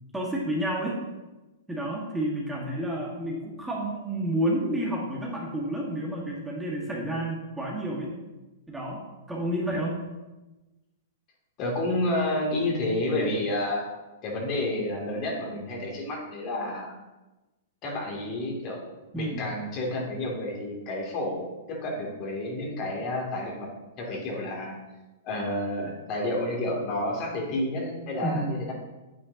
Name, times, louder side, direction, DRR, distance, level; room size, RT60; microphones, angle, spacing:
voice 1, 0.1-1.0 1.7-8.1 8.7-10.0 19.1-19.5 28.2-28.6, right 1 dB, 10° right, -4 dB, 1.7 m, -30 dB
voice 2, 11.6-13.9 14.2-16.9 17.8-18.8 19.1-23.7 24.0-24.8 25.2-28.7, left 1 dB, 35° left, -2 dB, 2.7 m, -30 dB
8.9 x 8.7 x 2.9 m, 1.1 s
figure-of-eight pair, 110°, 0 cm